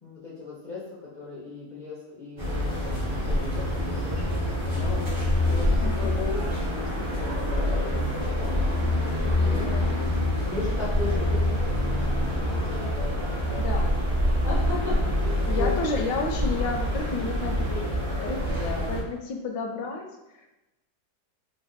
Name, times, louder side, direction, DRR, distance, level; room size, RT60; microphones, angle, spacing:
voice 1, 0.0-5.1 5.5-8.8 9.4-9.7 10.5-12.0 12.4-13.9 14.4-15.7 18.5-18.9, left 4 dB, 65° left, -8 dB, 0.4 m, -37 dB
sound 1, 2.4-19.0, left 1 dB, 30° right, 0.5 m, -26 dB
voice 2, 5.8-6.4 9.3-9.9 13.5-14.0 14.7-15.2 15.5-20.5, left 3 dB, 80° left, 3 dB, 1.2 m, -33 dB
3.4 x 2.1 x 3.8 m, 0.97 s
omnidirectional pair, 1.9 m